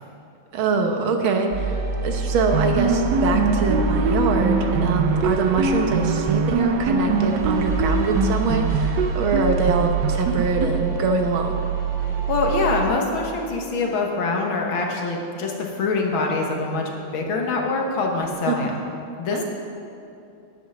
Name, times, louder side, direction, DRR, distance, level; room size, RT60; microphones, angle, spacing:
voice 1, 0.5-11.6 18.5-18.6 19.3-19.4, right 4 dB, 90° right, 4 dB, 1.8 m, -24 dB
sound 1, 1.5-12.9, right 4 dB, 35° right, 1.7 m, -27 dB
sound 2, 2.5-11.3, right 4 dB, 70° right, 1.1 m, -23 dB
voice 2, 12.3-18.8 19.2-19.4, left 3 dB, 85° left, 1 dB, 2.1 m, -24 dB
10.0 x 8.2 x 6.1 m, 2.7 s
omnidirectional pair, 2.2 m